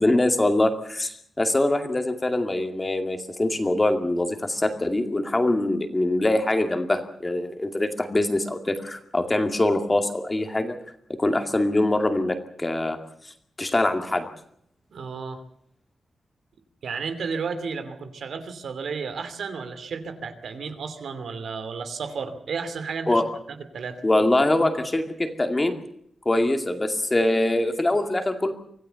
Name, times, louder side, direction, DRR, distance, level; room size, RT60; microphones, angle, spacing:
voice 1, 0.0-10.8 11.1-13.0 13.2-14.3 23.1-23.2 24.0-25.8 26.3-28.5, left 1 dB, 15° left, 6 dB, 2.3 m, -23 dB
voice 2, 14.9-15.4 16.8-23.2 23.7-24.0, right 5 dB, 75° right, 9 dB, 2.7 m, -32 dB
25.5 x 16.5 x 6.9 m, 0.70 s
wide cardioid pair, 175°, 0 cm